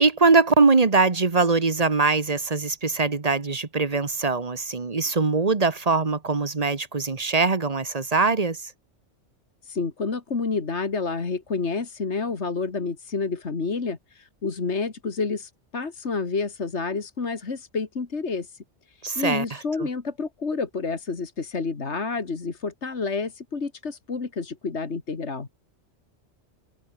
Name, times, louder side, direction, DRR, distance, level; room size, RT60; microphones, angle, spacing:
voice 1, 0.0-8.6 19.0-19.4 19.8-19.9, right 4 dB, 35° right, 1.3 m, -22 dB
voice 2, 9.6-25.5, left 4 dB, 70° left, 2.4 m, -29 dB
omnidirectional pair, 1.2 m